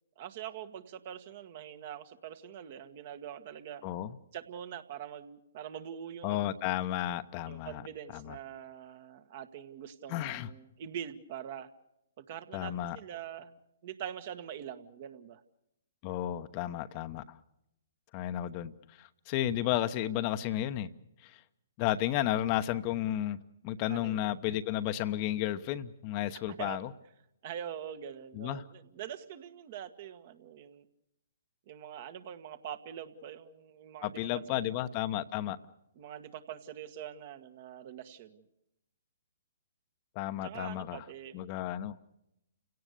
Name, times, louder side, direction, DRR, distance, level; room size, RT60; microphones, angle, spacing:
voice 1, 0.2-3.9 4.3-6.5 7.5-11.7 12.2-13.5 13.8-15.4 23.9-24.2 26.5-26.8 27.4-30.9 31.7-34.6 36.0-38.4 40.4-41.4, right 9 dB, 45° right, 9 dB, 1.7 m, -44 dB
voice 2, 3.8-4.2 6.2-7.8 8.1-8.4 10.1-10.5 12.5-13.0 16.0-17.4 18.1-18.7 19.0-20.9 21.2-21.4 21.8-23.4 23.6-26.9 28.3-28.6 34.0-35.6 40.1-41.0 41.3-42.0, left 13 dB, 35° left, 11 dB, 1.0 m, -33 dB
30.0 x 17.5 x 6.8 m, 0.85 s
figure-of-eight pair, 130°, 0 cm